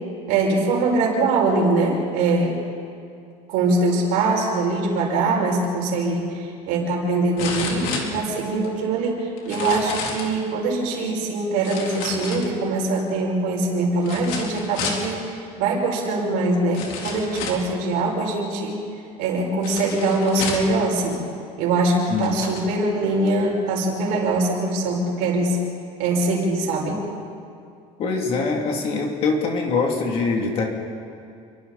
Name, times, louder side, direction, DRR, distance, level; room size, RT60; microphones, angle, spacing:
voice 1, 0.3-2.6 3.5-18.8 19.2-21.2 21.6-25.6 26.0-27.0, right 2 dB, 60° right, -1 dB, 6.0 m, -22 dB
sound 1, 6.0-6.1 7.4-8.7 9.4-10.3 11.6-12.8 14.0-15.1 16.1-16.2 16.7-17.7 19.6-20.8 21.6-21.7 22.1-22.7 23.3-23.4, left 4 dB, 60° left, 3.8 m, -31 dB
voice 2, 28.0-30.7, left 4 dB, 35° left, 1 dB, 2.7 m, -23 dB
29.0 x 23.5 x 4.2 m, 2.4 s
cardioid pair, 180°, 16 cm